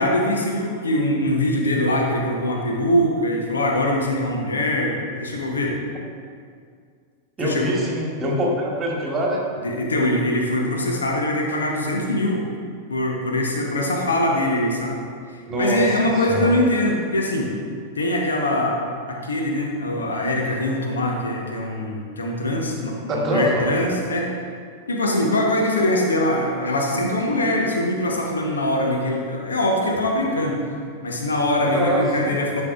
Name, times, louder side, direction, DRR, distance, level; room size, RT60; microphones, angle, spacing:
voice 1, 0.0-5.8 7.4-7.7 9.6-12.4 12.9-15.0 15.6-17.5 18.0-18.8 19.1-24.3 24.9-30.6 31.0-32.6, left 1 dB, 70° left, 0 dB, 0.9 m, -22 dB
voice 2, 7.4-9.4 15.5-15.8 16.2-16.6 23.1-23.8 31.7-32.3, equal, 25° right, -2 dB, 1.5 m, -24 dB
11.0 x 5.4 x 2.5 m, 2.1 s
figure-of-eight pair, 90°, 0 cm